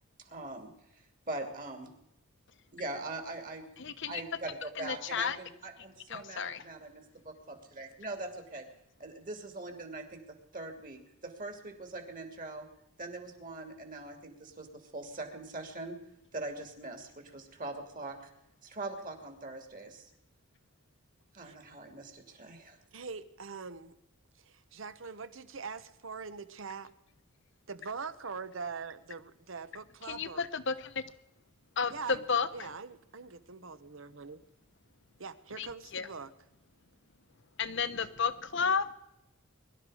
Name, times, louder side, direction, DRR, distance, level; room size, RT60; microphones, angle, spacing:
voice 1, 0.2-1.9 2.7-3.7 4.1-8.7 9.0-12.7 13.0-16.0 16.3-18.3 18.6-20.1 21.3-22.8, right 2 dB, 40° right, 4 dB, 2.7 m, -42 dB
voice 2, 3.8-4.2 4.8-5.4 6.1-6.6 30.1-31.0 31.8-32.7 35.6-35.7 35.9-36.1 37.6-38.9, left 5 dB, 60° left, 12 dB, 1.0 m, -32 dB
voice 3, 22.9-24.0 24.4-26.9 27.7-30.5 31.9-32.2 32.5-34.4 35.2-36.3, right 5 dB, 65° right, 13 dB, 1.0 m, -43 dB
22.5 x 12.0 x 4.9 m, 0.85 s
head